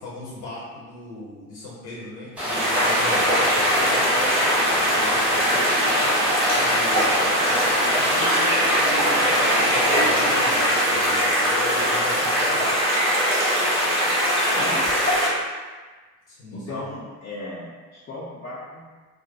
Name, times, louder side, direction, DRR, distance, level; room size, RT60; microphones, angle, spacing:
voice 1, 0.0-5.9 6.5-7.2 7.4-13.0 16.3-16.8, left 2 dB, 60° left, -6 dB, 0.8 m, -37 dB
Rain, 2.4-10.4, equal, ahead, 1.0 m, -27 dB
sound 1, 2.4-15.3, equal, 25° right, 1.3 m, -21 dB
voice 2, 14.5-15.0 16.5-18.8, left 1 dB, 25° left, -8 dB, 0.5 m, -35 dB
2.3 x 2.1 x 2.7 m, 1.4 s
figure-of-eight pair, 55°, 49 cm